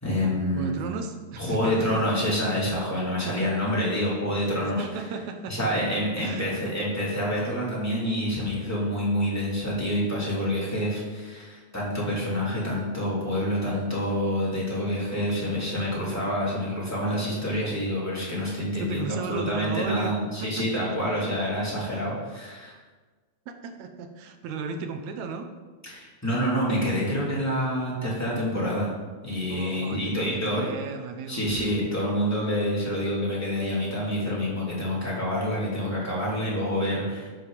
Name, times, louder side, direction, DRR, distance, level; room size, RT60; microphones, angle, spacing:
voice 1, 0.0-0.8 1.3-4.8 5.5-22.7 25.8-28.9 29.2-30.7 31.3-37.3, equal, 5° left, -6 dB, 3.1 m, -27 dB
voice 2, 0.5-2.0 3.2-3.5 4.8-6.8 18.8-20.2 20.4-21.2 23.5-25.5 29.5-31.5, right 5 dB, 75° right, 7 dB, 2.1 m, -35 dB
12.0 x 6.6 x 5.2 m, 1.4 s
omnidirectional pair, 3.4 m